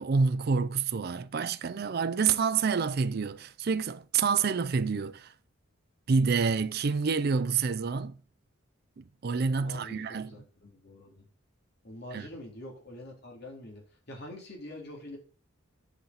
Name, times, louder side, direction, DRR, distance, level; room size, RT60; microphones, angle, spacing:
voice 1, 0.0-5.3 6.1-8.2 9.0-10.3 12.1-12.3, right 5 dB, 50° right, 0.5 m, -28 dB
voice 2, 9.6-11.3 11.8-15.2, left 1 dB, 50° left, 3.2 m, -45 dB
8.1 x 5.7 x 3.9 m
head